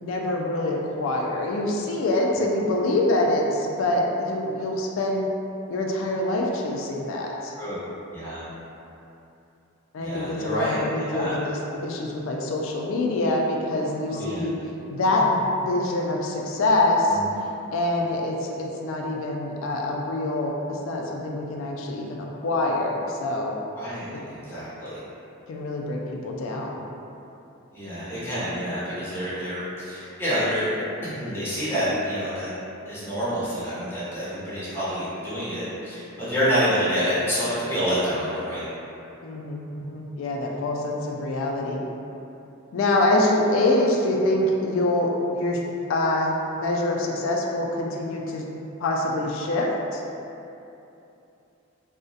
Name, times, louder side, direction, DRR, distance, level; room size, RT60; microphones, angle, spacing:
voice 1, 0.0-5.3 5.7-7.5 9.9-14.5 14.9-17.2 17.7-23.6 24.1-24.2 25.5-26.9 39.2-41.8 42.7-45.6 45.9-48.5 48.8-49.7 49.9-50.0, left 1 dB, 65° left, -1 dB, 0.3 m, -25 dB
voice 2, 8.1-8.4 10.0-10.8 11.1-11.3 14.1-14.5 17.1-17.3 23.8-25.0 27.7-32.5 32.9-38.7, equal, 10° left, -11 dB, 0.7 m, -28 dB
2.3 x 2.0 x 2.6 m, 2.8 s
head